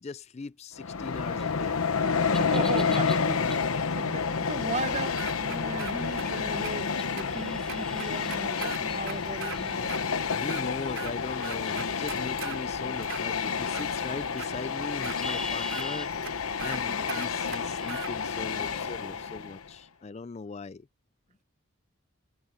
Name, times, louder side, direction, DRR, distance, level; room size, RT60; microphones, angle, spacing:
voice 1, 0.0-2.4 10.3-16.1 16.6-20.9, left 4 dB, 30° left, 0.3 m, -39 dB
Train, 0.8-19.7, left 5 dB, 85° left, 1.0 m, -30 dB
sound 1, 1.4-18.8, left 1 dB, 5° left, 3.5 m, -47 dB
voice 2, 2.4-10.0 18.5-19.5, right 2 dB, 30° right, 1.0 m, -37 dB
sound 2, 5.2-6.3 6.6-6.7 7.2-7.3 7.7-9.6 9.9-10.0 10.4-11.1 11.4-12.6 13.0-13.9 14.4-14.5 15.0-15.2 15.7-15.9 16.2-16.3 16.6-16.8 17.1-18.1, right 7 dB, 70° right, 3.7 m, -39 dB
head